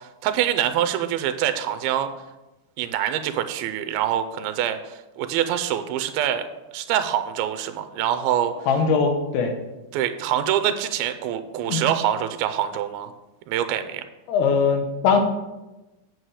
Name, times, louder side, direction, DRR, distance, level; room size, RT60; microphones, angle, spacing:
voice 1, 0.0-2.1 2.8-6.5 6.7-8.5 9.9-13.1 13.5-14.0, right 10 dB, 85° right, 9 dB, 2.5 m, -25 dB
voice 2, 8.7-9.6 11.6-11.8 14.3-15.2, left 5 dB, 90° left, 5 dB, 3.1 m, -21 dB
8.1 x 7.9 x 4.8 m, 1.0 s
omnidirectional pair, 4.3 m